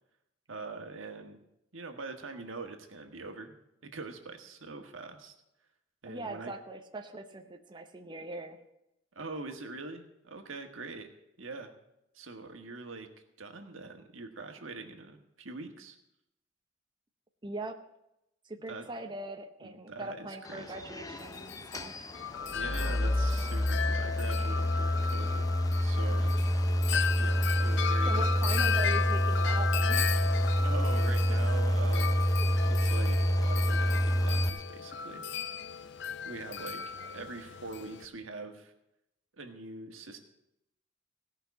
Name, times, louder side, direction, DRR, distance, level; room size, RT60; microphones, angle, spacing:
voice 1, 0.5-1.4 1.7-3.6 3.8-5.3 6.0-6.5 9.1-11.1 11.4-11.7 12.1-13.1 13.4-16.0 18.7-18.8 19.6-20.7 22.5-25.4 25.8-28.9 30.6-32.3 32.6-35.2 36.2-38.7 39.4-40.2, right 3 dB, 80° right, 5 dB, 1.6 m, -43 dB
voice 2, 6.0-8.6 17.4-17.8 18.4-22.1 28.1-30.2 37.0-37.3, right 2 dB, 25° right, 5 dB, 0.8 m, -41 dB
sound 1, 20.5-34.5, equal, 20° left, 0.6 m, -28 dB
Wind chime, 21.2-38.0, left 7 dB, 65° left, 0.6 m, -35 dB
17.0 x 5.8 x 8.2 m, 0.84 s
head